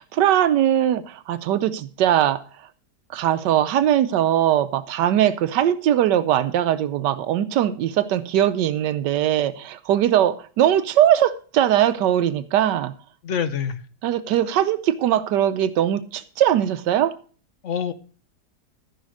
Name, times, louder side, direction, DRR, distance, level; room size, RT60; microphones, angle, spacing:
voice 1, 0.0-2.4 3.1-12.9 14.0-17.1, right 11 dB, 85° right, 12 dB, 1.3 m, -20 dB
voice 2, 13.2-13.8 17.6-17.9, left 7 dB, 55° left, 11 dB, 1.1 m, -25 dB
14.5 x 5.7 x 6.2 m, 0.40 s
omnidirectional pair, 1.8 m